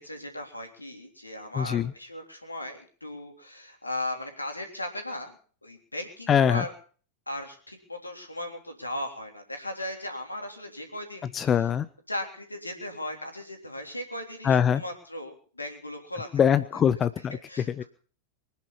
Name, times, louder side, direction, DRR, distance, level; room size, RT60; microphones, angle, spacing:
voice 1, 0.0-6.7 7.3-11.5 12.1-16.4 17.3-17.8, left 1 dB, 85° left, 4 dB, 3.5 m, -37 dB
voice 2, 1.5-1.9 6.3-6.6 11.3-11.9 14.4-14.8 16.3-17.4 17.7-17.8, left 8 dB, 25° left, 15 dB, 0.7 m, -23 dB
24.0 x 10.5 x 5.6 m, 0.43 s
figure-of-eight pair, 90°, 0 cm